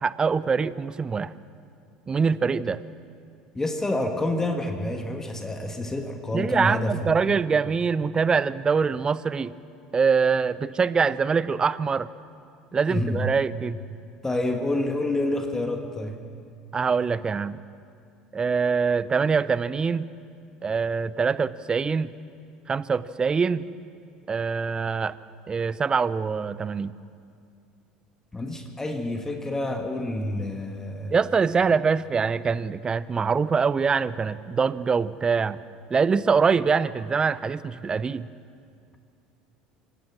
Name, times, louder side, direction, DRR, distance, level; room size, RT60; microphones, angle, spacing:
voice 1, 0.0-1.3 2.1-2.8 6.3-9.5 9.9-12.1 12.7-13.8 16.7-17.6 18.3-20.1 20.6-22.1 22.7-23.6 24.3-25.2 25.5-26.9 31.1-35.6 35.9-38.3, right 5 dB, 25° right, 17 dB, 0.7 m, -24 dB
voice 2, 3.6-7.4 12.9-13.3 14.2-16.2 28.3-31.1, left 1 dB, 15° left, 5 dB, 1.9 m, -28 dB
26.0 x 17.0 x 6.2 m, 2.4 s
hypercardioid pair, 70°, 3 cm